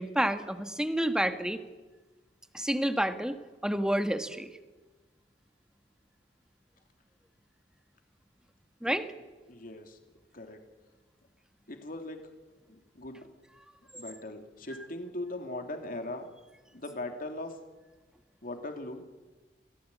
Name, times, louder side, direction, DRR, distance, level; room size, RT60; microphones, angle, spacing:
voice 1, 0.0-1.6 2.5-3.4 3.6-4.5 8.8-9.1 13.9-14.0, right 1 dB, 5° right, 9 dB, 1.4 m, -29 dB
voice 2, 9.5-10.0 10.3-10.6 11.7-12.2 12.7-13.2 13.9-16.3 16.7-17.6 18.4-19.0, left 1 dB, 55° left, 5 dB, 2.8 m, -39 dB
27.0 x 16.5 x 8.4 m, 1.2 s
head